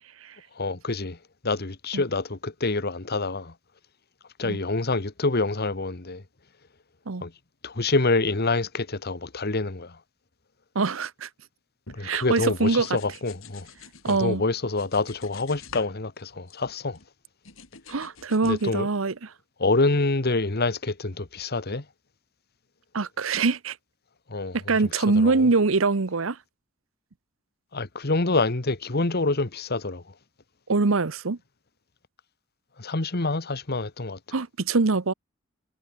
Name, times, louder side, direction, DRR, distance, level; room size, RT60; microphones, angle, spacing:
voice 1, 0.6-1.2 1.4-3.5 4.4-6.2 7.2-7.3 7.6-10.0 11.9-13.7 14.1-17.0 18.4-18.9 19.6-21.8 24.3-24.6 24.9-25.5 27.7-30.0 32.8-34.2, left 3 dB, 55° left, 1.6 m, -26 dB
voice 2, 10.7-11.3 12.0-12.9 14.0-14.4 17.9-19.1 22.9-23.8 24.5-26.4 30.7-31.4 34.3-35.1, right 3 dB, 80° right, 0.9 m, -23 dB
sound 1, 11.9-14.2 14.6-15.9 16.2-17.1 17.4-18.6, left 5 dB, 80° left, 5.4 m, -46 dB
head